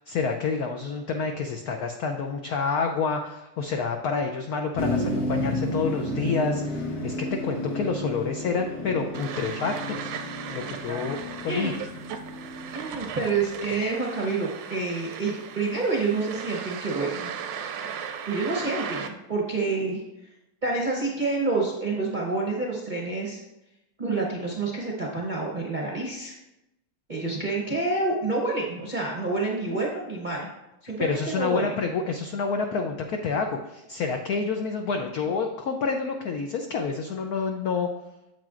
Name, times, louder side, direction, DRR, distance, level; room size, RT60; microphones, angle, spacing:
voice 1, 0.1-10.1 10.5-11.7 31.0-37.9, left 5 dB, 80° left, 4 dB, 0.8 m, -28 dB
Motor vehicle (road), 4.8-13.7, left 1 dB, 50° left, 1.9 m, -32 dB
sound 1, 9.1-19.1, right 7 dB, 90° right, 1.5 m, -37 dB
voice 2, 12.7-17.3 18.3-20.0 20.6-23.4 24.0-26.3 27.1-30.5 30.8-31.7, right 3 dB, 40° right, -2 dB, 0.6 m, -28 dB
8.9 x 7.6 x 2.5 m, 0.92 s
omnidirectional pair, 2.2 m